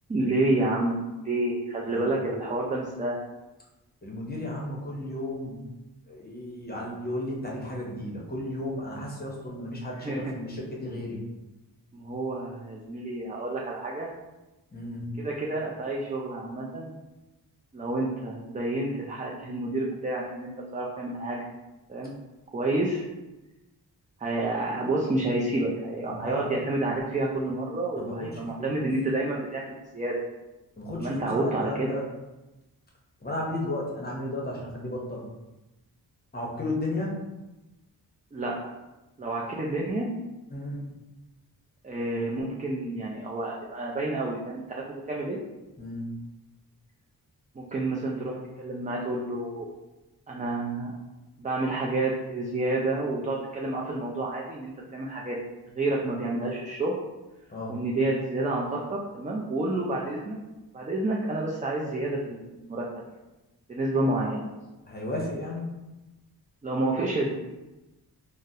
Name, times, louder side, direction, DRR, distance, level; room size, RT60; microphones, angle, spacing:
voice 1, 0.1-3.2 10.0-10.3 11.9-14.1 15.2-16.9 17.7-21.5 21.9-22.1 22.5-23.1 24.2-30.2 31.0-32.0 38.3-38.6 39.2-40.1 41.8-45.4 47.6-49.7 50.3-50.9 51.4-55.4 55.7-56.9 57.7-60.4 60.7-62.8 63.7-64.5 66.6-67.3, right 2 dB, 20° right, -3 dB, 0.3 m, -29 dB
voice 2, 1.8-2.2 4.0-5.6 6.1-11.2 14.7-15.1 26.1-26.5 27.9-28.8 30.8-32.0 33.2-35.2 36.3-37.2 40.5-40.8 45.8-46.1 57.5-57.7 64.9-65.7, left 1 dB, 25° left, -2 dB, 0.7 m, -34 dB
3.7 x 2.0 x 2.7 m, 1.0 s
wide cardioid pair, 90°, 40 cm